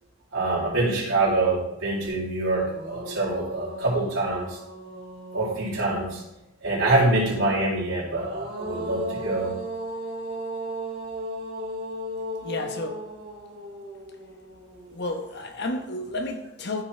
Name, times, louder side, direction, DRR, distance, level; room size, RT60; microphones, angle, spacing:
voice 1, 0.3-4.6 5.3-6.2 6.6-9.5, right 2 dB, 70° right, 4.0 m, -25 dB
sound 1, 2.0-2.1 2.5-6.2 7.9-15.1, equal, 50° right, 3.1 m, -36 dB
voice 2, 12.4-13.1 14.9-16.8, left 2 dB, 50° left, 1.0 m, -31 dB
14.0 x 5.9 x 3.3 m
head